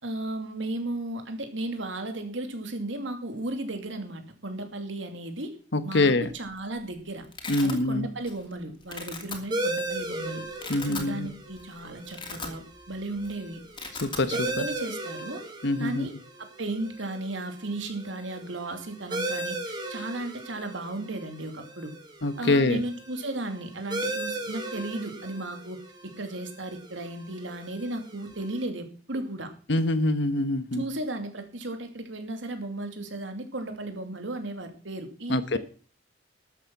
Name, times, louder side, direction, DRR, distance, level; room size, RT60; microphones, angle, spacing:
voice 1, 0.0-5.5 5.8-7.3 7.6-10.4 10.8-13.6 14.3-15.4 15.8-16.1 16.4-21.9 22.4-25.8 26.2-29.5 30.7-35.6, right 2 dB, 85° right, 6 dB, 2.7 m, -35 dB
voice 2, 5.7-6.3 7.5-8.1 10.7-11.3 14.0-14.6 15.6-16.2 22.2-22.8 29.7-30.9 35.3-35.6, left 2 dB, 65° left, 13 dB, 1.2 m, -25 dB
Domestic sounds home sounds, 6.3-6.7 6.9-7.8 8.3-8.5 8.8-9.4 10.0-10.1 10.5-11.1 11.5-11.6 12.0-12.9 13.2-13.3 13.6-14.3, left 4 dB, 25° left, 2.7 m, -38 dB
sound 1, 9.5-28.7, right 2 dB, 25° right, 3.1 m, -37 dB
13.0 x 8.8 x 6.0 m, 0.41 s
head